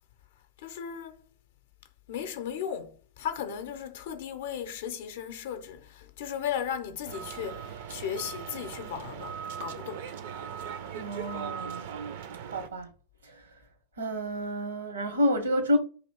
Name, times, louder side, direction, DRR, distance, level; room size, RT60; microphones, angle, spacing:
voice 1, 0.6-1.2 2.1-10.1, left 8 dB, 55° left, 0.5 m, -36 dB
sound 1, 7.1-12.7, right 8 dB, 55° right, 0.4 m, -39 dB
voice 2, 10.9-11.8 12.5-12.9 13.2-13.5 14.0-15.8, equal, 70° right, 0.9 m, -29 dB
2.9 x 2.9 x 4.3 m
figure-of-eight pair, 90°, 0 cm